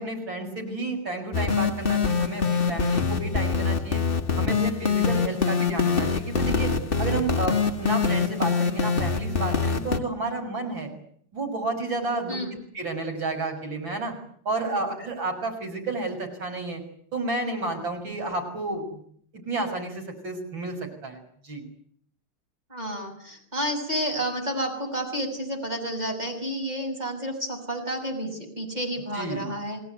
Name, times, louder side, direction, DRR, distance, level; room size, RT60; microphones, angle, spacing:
voice 1, 0.0-4.1 4.4-6.7 7.0-10.9 11.3-12.4 12.7-14.1 14.5-16.8 17.1-19.0 19.3-21.6 29.1-29.5, right 2 dB, 60° right, 3 dB, 7.3 m, -31 dB
sound 1, 1.3-10.0, left 5 dB, 30° left, 1.7 m, -24 dB
voice 2, 12.3-12.6 14.6-15.0 22.7-29.8, equal, 20° right, 2 dB, 6.7 m, -31 dB
29.0 x 18.5 x 9.4 m, 0.64 s
omnidirectional pair, 2.4 m